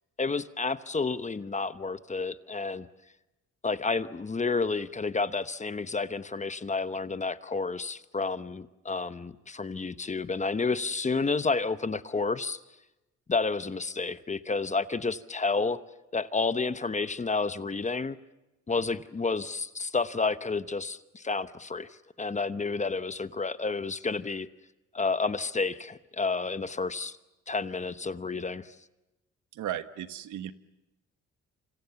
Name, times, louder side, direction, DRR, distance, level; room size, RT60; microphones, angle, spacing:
voice 1, 0.2-2.9 3.6-12.6 13.3-15.8 16.1-18.2 18.7-21.9 22.2-24.5 24.9-27.2 27.5-28.7, left 4 dB, 25° left, 12 dB, 1.0 m, -30 dB
voice 2, 29.5-30.5, right 11 dB, 75° right, 11 dB, 1.3 m, -35 dB
27.5 x 26.5 x 7.0 m, 1.0 s
cardioid pair, 90°, 30 cm